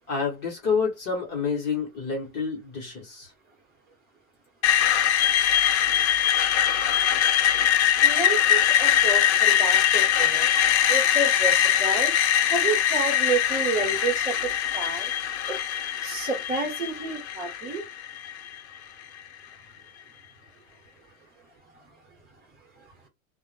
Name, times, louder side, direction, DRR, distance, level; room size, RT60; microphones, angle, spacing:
voice 1, 0.1-3.3, left 5 dB, 25° left, 0.9 m, -28 dB
Screech, 4.6-18.6, left 10 dB, 55° left, 0.6 m, -22 dB
voice 2, 8.0-10.5 10.9-12.1 12.5-15.1 15.5-15.6 16.0-17.8 22.8-22.9, right 3 dB, 20° right, 0.9 m, -30 dB
2.1 x 2.1 x 3.1 m
supercardioid pair, 155°, 41 cm